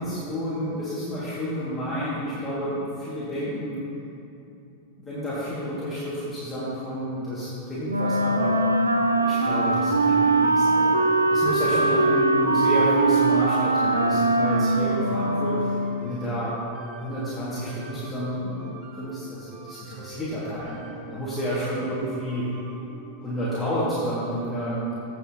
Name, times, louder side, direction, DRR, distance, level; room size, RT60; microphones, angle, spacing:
voice 1, 0.0-3.8 5.0-8.5 9.2-11.0 11.3-16.5 17.0-20.8 21.1-22.5 23.2-24.9, equal, 10° left, -11 dB, 2.2 m, -30 dB
Wind instrument woodwind instrument, 7.9-16.1, right 2 dB, 80° right, 0.4 m, -21 dB
sound 1, 9.4-24.1, right 3 dB, 25° right, 1.2 m, -44 dB
16.0 x 6.2 x 3.0 m, 2.7 s
figure-of-eight pair, 90°, 0 cm